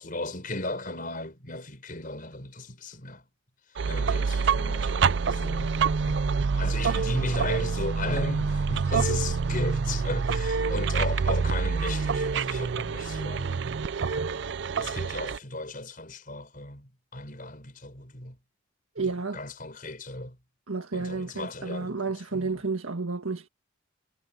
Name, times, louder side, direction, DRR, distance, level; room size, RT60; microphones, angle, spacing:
voice 1, 0.0-3.2 3.8-6.2 6.6-13.7 14.8-18.4 19.0-20.4 20.9-22.0 22.3-22.7, left 2 dB, 40° left, 5.8 m, -36 dB
sound 1, 3.8-15.4, right 5 dB, 60° right, 0.5 m, -27 dB
voice 2, 19.0-19.4 20.7-23.5, right 4 dB, 90° right, 1.7 m, -31 dB
head